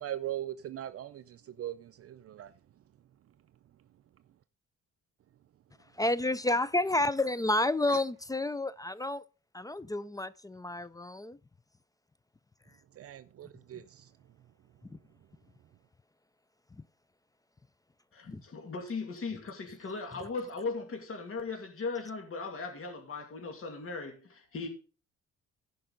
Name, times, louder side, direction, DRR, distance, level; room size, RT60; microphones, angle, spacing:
voice 1, 0.0-2.5 7.9-8.0 13.0-14.1, right 12 dB, 50° right, 0.5 m, -40 dB
voice 2, 6.0-9.2 9.5-11.4 18.3-18.4, left 2 dB, 10° left, 0.4 m, -30 dB
voice 3, 18.1-24.7, left 4 dB, 45° left, 2.4 m, -38 dB
15.0 x 5.5 x 3.8 m
cardioid pair, 90°, 30 cm